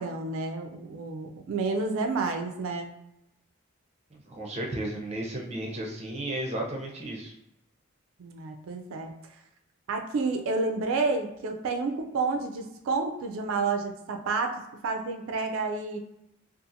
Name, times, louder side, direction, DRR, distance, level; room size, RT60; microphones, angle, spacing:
voice 1, 0.0-2.9 8.2-9.1 9.9-16.0, right 3 dB, 90° right, 4 dB, 0.4 m, -30 dB
voice 2, 4.1-7.3, right 1 dB, 30° right, 0 dB, 0.5 m, -34 dB
2.7 x 2.4 x 2.5 m, 0.82 s
head